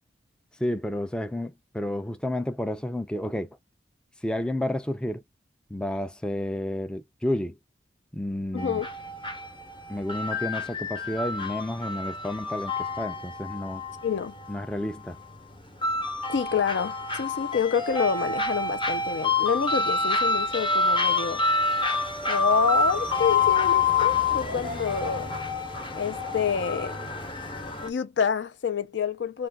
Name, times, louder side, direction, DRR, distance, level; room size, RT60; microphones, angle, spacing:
voice 1, 0.6-3.5 4.2-5.2 5.7-7.6 8.1-8.8 9.9-13.8 14.5-15.2, left 1 dB, 5° left, 0.3 m, -31 dB
voice 2, 8.5-8.9 14.0-14.4 16.3-21.4 22.3-25.3 26.0-27.0 27.8-29.5, left 6 dB, 75° left, 0.4 m, -28 dB
sound 1, 8.6-27.9, left 3 dB, 30° left, 0.7 m, -27 dB
2.3 x 2.2 x 3.4 m
head